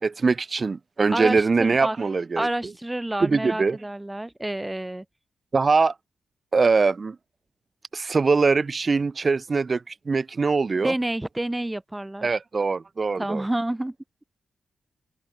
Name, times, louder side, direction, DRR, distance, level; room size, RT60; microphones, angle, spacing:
voice 1, 0.0-2.5 3.2-3.8 5.5-5.9 6.5-7.2 7.9-10.9 12.2-13.4, right 4 dB, 35° right, 5.3 m, -22 dB
voice 2, 1.1-2.0 2.4-5.0 10.8-12.4 13.2-13.9, right 1 dB, 10° right, 5.3 m, -29 dB
cardioid pair, 115°, 0 cm